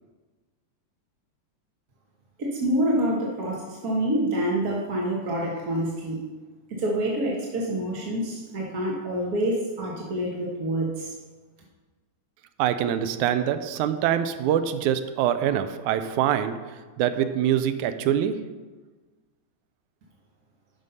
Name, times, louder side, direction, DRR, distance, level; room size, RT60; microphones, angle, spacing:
voice 1, 2.4-6.2 6.8-11.1, right 1 dB, 55° right, -3 dB, 1.0 m, -27 dB
voice 2, 12.6-16.6 17.0-18.3, right 10 dB, 80° right, 10 dB, 1.9 m, -24 dB
11.5 x 5.4 x 5.5 m, 1.3 s
omnidirectional pair, 3.5 m